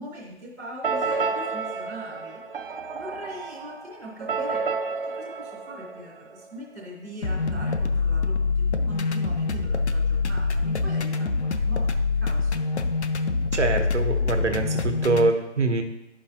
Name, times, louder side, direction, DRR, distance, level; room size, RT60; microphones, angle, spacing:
voice 1, 0.0-4.7 5.0-11.9 12.2-12.7, equal, ahead, -12 dB, 0.5 m, -41 dB
sound 1, 0.8-6.6, right 4 dB, 50° right, 0.7 m, -31 dB
sound 2, 7.2-15.3, left 4 dB, 70° left, 0.7 m, -25 dB
voice 2, 13.5-15.8, right 3 dB, 80° right, 5 dB, 1.2 m, -24 dB
10.5 x 5.4 x 2.9 m, 0.94 s
figure-of-eight pair, 150°, 35 cm